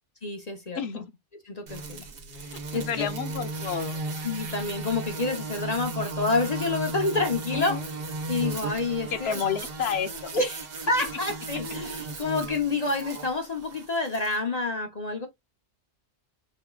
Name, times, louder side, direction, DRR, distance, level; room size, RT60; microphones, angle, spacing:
voice 1, 0.2-0.8 1.5-2.0 2.7-3.1 4.2-7.8 8.3-9.4 10.3-10.6 10.9-15.3, left 3 dB, 40° left, 0.9 m, -28 dB
voice 2, 0.7-1.1 2.4-4.0 7.5-7.8 9.1-10.4, left 7 dB, 65° left, 0.9 m, -31 dB
sound 1, 1.7-14.4, right 2 dB, 55° right, 1.2 m, -36 dB
5.0 x 3.6 x 2.3 m
omnidirectional pair, 1.2 m